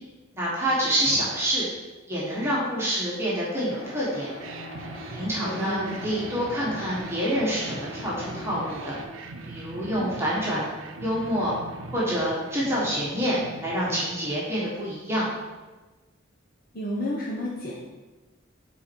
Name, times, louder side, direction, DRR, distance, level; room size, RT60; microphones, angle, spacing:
voice 1, 0.3-1.7 2.1-4.3 5.1-8.9 9.4-10.7 11.0-11.5 11.9-15.3, equal, 15° right, -7 dB, 1.5 m, -27 dB
sound 1, 3.7-9.0, left 1 dB, 30° left, 1.7 m, -41 dB
sound 2, 4.4-14.9, right 2 dB, 85° right, 0.6 m, -41 dB
voice 2, 5.4-6.0 10.0-10.1 16.7-17.7, equal, 50° left, -4 dB, 1.0 m, -31 dB
8.5 x 4.2 x 4.6 m, 1.2 s
head